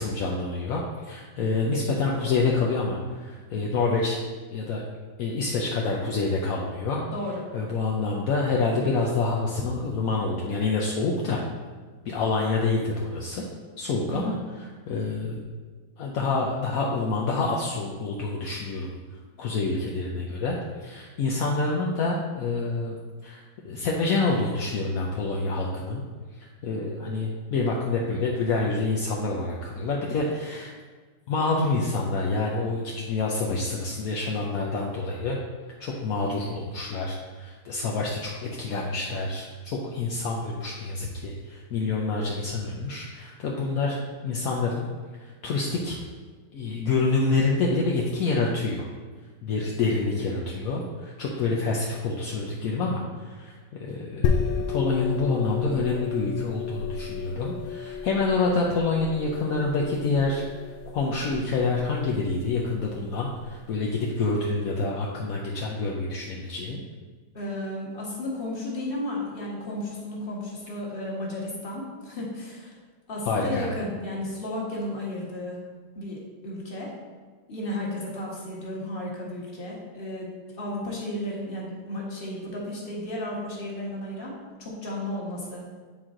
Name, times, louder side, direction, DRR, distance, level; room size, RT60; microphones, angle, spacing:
voice 1, 0.0-4.2 4.5-4.8 5.2-7.0 7.5-11.4 12.0-13.4 13.8-14.3 14.9-15.4 16.0-18.9 19.4-20.6 20.8-23.0 23.2-26.0 26.6-30.7 31.3-35.4 35.8-44.0 44.2-44.8 45.2-46.0 46.5-48.9 49.4-60.4 60.9-66.8 73.3-73.7, left 3 dB, 65° left, -2 dB, 0.9 m, -27 dB
voice 2, 7.1-7.4 14.1-14.4 67.3-72.7 73.1-75.6 75.9-76.9 77.5-80.3 80.6-85.6, left 1 dB, 30° left, -4 dB, 1.6 m, -33 dB
sound 1, 54.2-63.6, left 6 dB, 80° left, 1.4 m, -32 dB
8.9 x 4.6 x 3.7 m, 1.5 s
omnidirectional pair, 2.1 m